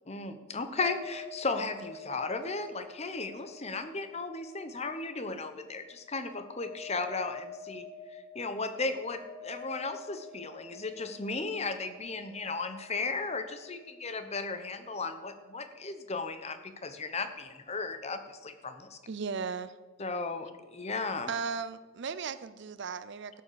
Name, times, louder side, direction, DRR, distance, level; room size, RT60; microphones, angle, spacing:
voice 1, 0.1-19.0 20.0-21.3, left 3 dB, 30° left, 9 dB, 0.8 m, -35 dB
sound 1, 0.7-16.3, left 3 dB, 45° left, 3.9 m, -49 dB
voice 2, 19.1-19.8 21.3-23.4, right 5 dB, 55° right, 14 dB, 0.5 m, -36 dB
12.0 x 7.4 x 6.7 m, 1.3 s
head